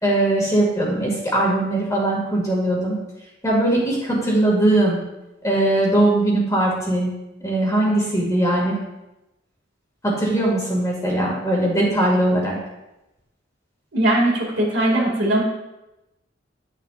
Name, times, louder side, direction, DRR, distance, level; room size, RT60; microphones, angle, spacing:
voice 1, 0.0-3.0 3.4-5.0 5.4-7.1 7.4-8.8 10.0-12.6, right 1 dB, 15° left, -3 dB, 2.1 m, -20 dB
voice 2, 13.9-15.4, right 1 dB, 60° right, -2 dB, 2.2 m, -19 dB
11.0 x 6.6 x 2.5 m, 0.96 s
head